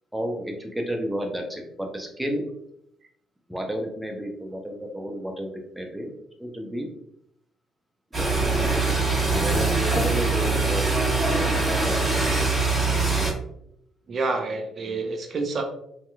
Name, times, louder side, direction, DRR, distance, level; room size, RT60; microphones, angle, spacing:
voice 1, 0.1-2.5 3.5-6.1 6.4-6.9 8.2-9.1 9.4-10.9 11.3-12.5, equal, 5° right, 2 dB, 0.7 m, -32 dB
sound 1, 8.1-13.3, right 3 dB, 25° right, 1.4 m, -23 dB
voice 2, 14.1-15.6, right 3 dB, 50° right, 3 dB, 0.5 m, -28 dB
2.8 x 2.4 x 2.2 m, 0.75 s
hypercardioid pair, 50°, 0 cm